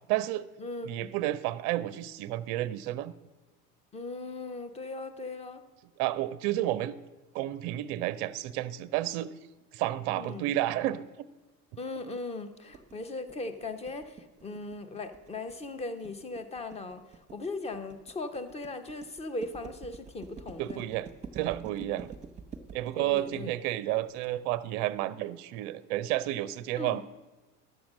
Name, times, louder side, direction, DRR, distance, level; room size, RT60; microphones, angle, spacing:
voice 1, 0.1-0.5 0.8-3.1 6.0-6.9 7.3-9.3 9.7-11.0 20.6-21.1 21.3-22.1 22.7-27.0, right 14 dB, 40° right, 16 dB, 0.5 m, -31 dB
voice 2, 0.6-1.1 3.9-5.6 10.2-10.5 11.8-17.0 17.3-20.8 23.0-23.5 26.8-27.0, left 2 dB, 15° left, 10 dB, 0.7 m, -38 dB
sound 1, 12.7-24.3, right 5 dB, 15° right, 1.0 m, -47 dB
11.0 x 7.1 x 6.2 m, 1.2 s
figure-of-eight pair, 70°, 48 cm